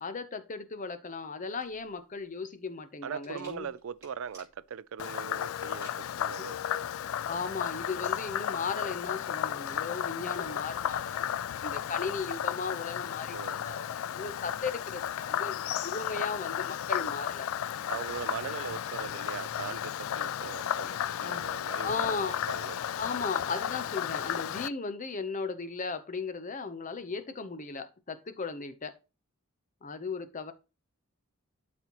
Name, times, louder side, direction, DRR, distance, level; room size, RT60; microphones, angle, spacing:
voice 1, 0.0-3.7 7.3-11.3 11.6-17.5 18.5-18.7 21.2-21.4 21.8-22.4 23.0-28.9 29.8-30.5, left 4 dB, 35° left, 0.7 m, -36 dB
sound 1, 1.6-9.1, right 1 dB, 15° right, 2.8 m, -59 dB
voice 2, 3.0-6.9 13.3-13.6 17.9-22.8, right 7 dB, 65° right, 0.4 m, -41 dB
Frog, 5.0-24.7, left 10 dB, 65° left, 0.3 m, -34 dB
12.0 x 4.3 x 3.0 m
head